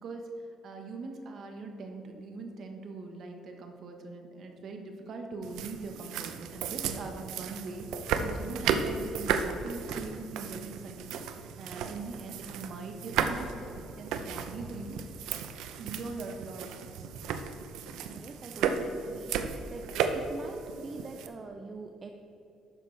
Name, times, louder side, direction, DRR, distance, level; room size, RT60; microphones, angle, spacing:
voice 1, 0.6-11.1 11.4-15.0 15.8-17.1, right 3 dB, 45° right, 4 dB, 1.2 m, -42 dB
sound 1, 5.4-21.3, right 6 dB, 90° right, 0.7 m, -34 dB
voice 2, 18.0-22.1, right 3 dB, 25° right, 4 dB, 0.5 m, -44 dB
12.0 x 9.0 x 3.3 m, 2.9 s
cardioid pair, 165°, 0 cm